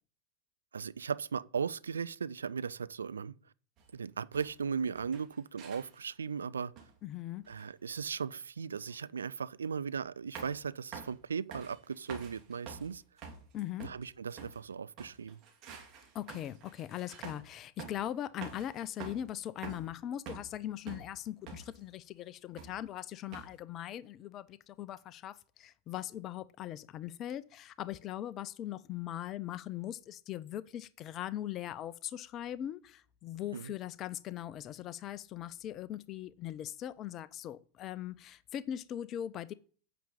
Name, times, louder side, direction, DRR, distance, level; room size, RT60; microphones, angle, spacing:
voice 1, 0.7-3.3 3.9-6.7 7.5-13.0 13.8-15.4 33.5-33.7, right 6 dB, 70° right, 0.5 m, -37 dB
sound 1, 3.8-3.9 4.3-4.6 5.0-6.2 6.8-7.0 7.4-7.7 8.9-9.0 10.4-10.7 10.9-11.2 11.5-14.6 15.0-17.5 17.8-18.1 18.4-19.3 19.6-20.6 20.9-21.8 22.6-22.9 23.3-23.6, right 6 dB, 35° right, 3.1 m, -48 dB
voice 2, 7.0-7.4 13.5-13.9 16.1-39.5, left 12 dB, 30° left, 0.7 m, -40 dB
9.2 x 6.1 x 8.4 m
figure-of-eight pair, 90°, 0 cm